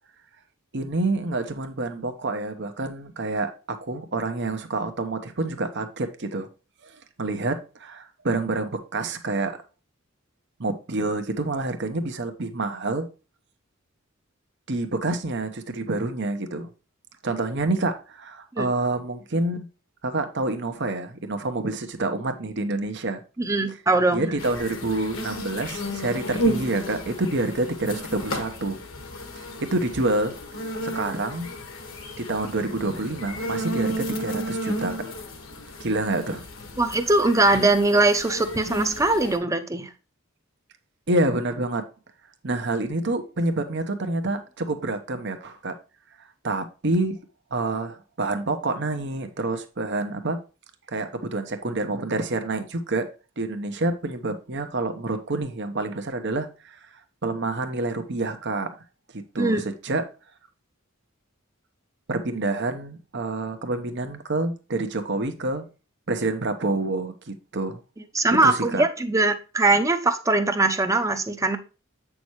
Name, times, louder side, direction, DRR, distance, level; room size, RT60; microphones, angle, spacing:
voice 1, 0.7-6.5 6.8-9.6 10.6-13.1 14.7-16.7 17.2-19.7 20.0-23.2 24.1-28.8 29.4-30.4 30.8-31.5 32.2-35.0 35.8-36.5 41.1-41.8 42.4-45.7 46.4-47.2 47.5-50.4 50.9-53.1 53.4-56.7 57.2-58.7 59.3-60.0 62.1-65.7 66.1-67.8 68.3-68.8, right 2 dB, 55° right, 1.0 m, -27 dB
voice 2, 23.4-24.4 36.8-39.9 59.4-59.6 68.1-71.6, right 2 dB, 15° right, 0.8 m, -21 dB
sound 1, 24.4-39.4, equal, 70° left, 1.4 m, -33 dB
8.4 x 6.1 x 3.1 m
head